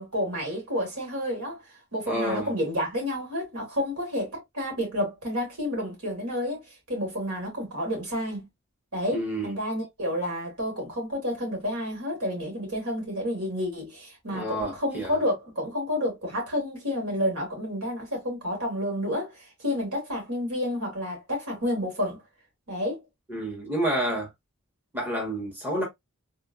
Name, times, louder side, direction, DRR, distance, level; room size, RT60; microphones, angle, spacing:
voice 1, 0.0-1.6 1.9-6.6 6.9-8.5 8.9-22.2 22.7-23.0, equal, 90° right, 2.3 m, -30 dB
voice 2, 2.1-2.5 9.1-9.5 14.3-15.2 23.3-24.3 24.9-25.8, right 1 dB, 10° right, 1.2 m, -29 dB
3.6 x 2.7 x 2.4 m
head